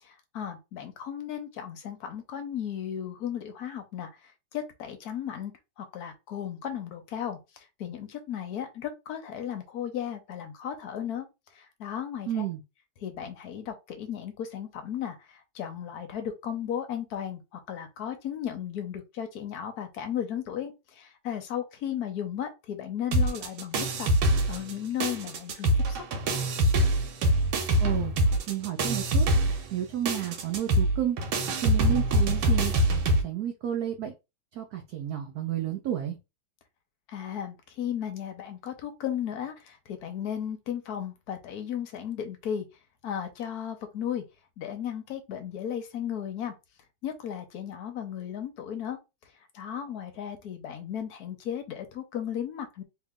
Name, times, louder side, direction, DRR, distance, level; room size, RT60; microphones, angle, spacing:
voice 1, 0.0-11.3 11.5-12.5 13.0-24.1 24.5-26.0 37.1-42.7 43.0-44.2 44.6-46.5 47.0-49.0 49.5-52.8, left 9 dB, 65° left, 1.0 m, -35 dB
voice 2, 12.3-12.6 27.8-32.7 33.0-34.1 34.5-36.2, right 11 dB, 70° right, 0.9 m, -32 dB
sound 1, 23.1-24.7 25.0-33.2, right 1 dB, 85° right, 1.6 m, -24 dB
3.1 x 2.9 x 3.6 m
omnidirectional pair, 2.2 m